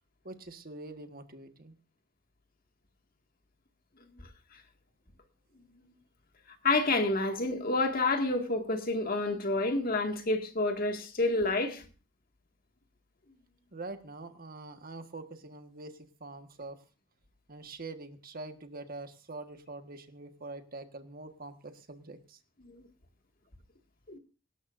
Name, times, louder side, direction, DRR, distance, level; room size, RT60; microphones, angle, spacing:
voice 1, 0.2-1.7 13.7-16.8 17.5-22.4, right 2 dB, 45° right, 1.5 m, -44 dB
voice 2, 6.6-11.9 22.6-22.9 24.1-24.2, left 2 dB, 45° left, 2.1 m, -29 dB
24.0 x 12.5 x 2.6 m
head